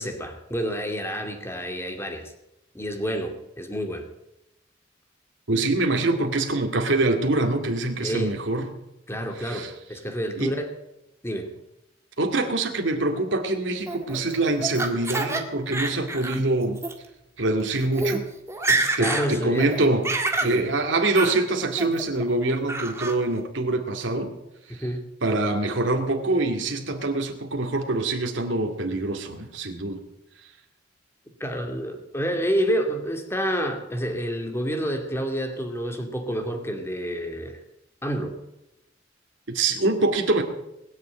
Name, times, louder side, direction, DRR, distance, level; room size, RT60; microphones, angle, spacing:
voice 1, 0.0-2.3 2.7-4.1 8.0-8.3 9.1-10.7 11.2-11.5 19.0-19.8 20.4-20.7 24.8-25.0 31.4-37.6 38.0-38.3, equal, 15° left, 4 dB, 2.2 m, -28 dB
voice 2, 5.5-8.7 9.4-9.7 10.3-10.6 12.2-16.8 17.4-18.3 19.0-20.1 20.4-24.3 24.7-24.8 25.2-30.0 39.5-40.4, right 2 dB, 80° right, 3 dB, 2.2 m, -24 dB
Laughter, 13.9-15.4 15.7-16.4 16.8-16.9 17.6-17.7 17.9-18.2 18.5-19.3 19.6-20.5 21.1-21.4 21.8-22.2 22.7-23.2, right 2 dB, 15° right, 1.8 m, -27 dB
20.5 x 7.4 x 8.8 m, 0.89 s
head